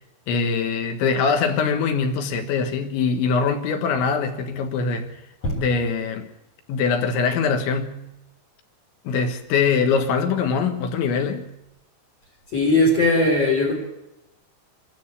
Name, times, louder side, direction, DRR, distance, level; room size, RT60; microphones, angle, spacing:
voice 1, 0.3-5.1 5.6-6.3 6.7-8.1 9.1-11.5, left 5 dB, 80° left, 3.8 m, -23 dB
voice 2, 12.5-13.7, left 2 dB, 35° left, 4.2 m, -19 dB
26.0 x 13.5 x 8.5 m
omnidirectional pair, 5.3 m